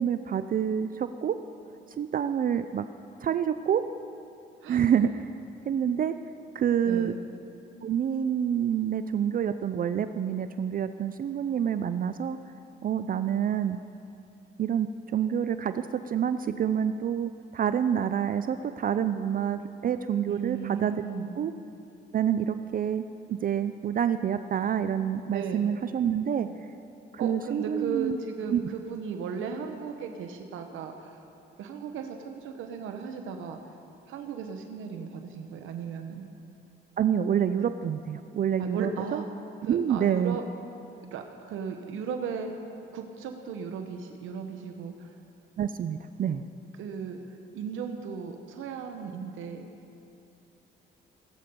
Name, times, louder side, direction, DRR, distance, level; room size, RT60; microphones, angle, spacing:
voice 1, 0.0-1.4 2.0-2.8 3.2-3.9 4.7-5.3 5.7-6.1 6.5-7.1 7.8-12.4 12.8-13.8 14.6-20.9 21.4-21.5 22.1-23.0 23.3-26.5 27.1-28.2 28.5-28.6 37.0-39.2 39.6-40.4 45.6-46.4, right 8 dB, 45° right, 11 dB, 0.4 m, -27 dB
voice 2, 6.8-7.2 20.3-21.4 25.3-25.7 27.2-31.2 31.6-33.8 34.1-36.3 38.6-39.3 39.6-40.4 41.0-42.5 42.9-45.2 46.8-49.7, right 6 dB, 85° right, 5 dB, 0.9 m, -36 dB
18.0 x 8.5 x 5.3 m, 2.6 s
cardioid pair, 90°, 20 cm